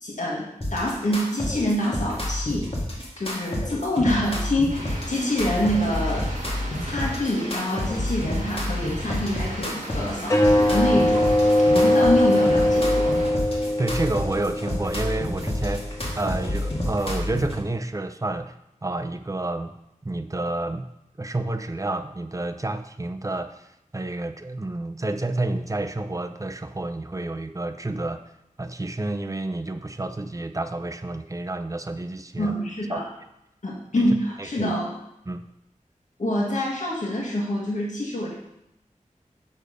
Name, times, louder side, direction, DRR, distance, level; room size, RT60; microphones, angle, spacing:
voice 1, 0.0-2.7 3.2-6.3 6.8-13.2 32.4-33.1 33.6-34.9 36.2-38.3, left 1 dB, 65° left, -3 dB, 1.7 m, -26 dB
sound 1, 0.6-17.6, left 1 dB, 45° left, 2.0 m, -29 dB
sound 2, 4.7-13.3, right 1 dB, 65° right, 1.8 m, -37 dB
sound 3, 10.2-17.2, left 1 dB, 25° left, 0.8 m, -22 dB
voice 2, 13.8-18.5 18.8-19.7 20.0-20.9 21.2-28.2 28.6-32.6 32.9-33.0 34.0-34.1 34.4-34.7 35.3-35.5, right 2 dB, 25° right, 8 dB, 0.6 m, -29 dB
6.6 x 6.4 x 5.1 m, 0.82 s
wide cardioid pair, 70°, 13 cm